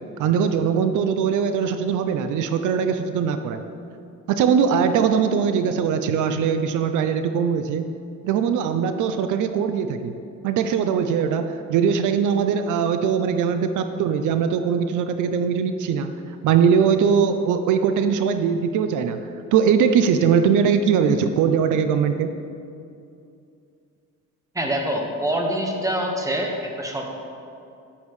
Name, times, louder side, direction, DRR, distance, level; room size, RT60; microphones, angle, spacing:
voice 1, 0.2-3.6 4.3-7.8 8.2-10.1 10.4-19.2 19.5-22.3, right 7 dB, 80° right, 9 dB, 0.5 m, -21 dB
voice 2, 24.5-27.0, right 1 dB, 10° right, 1 dB, 1.2 m, -25 dB
9.4 x 8.5 x 3.2 m, 2.5 s
cardioid pair, 90°, 30 cm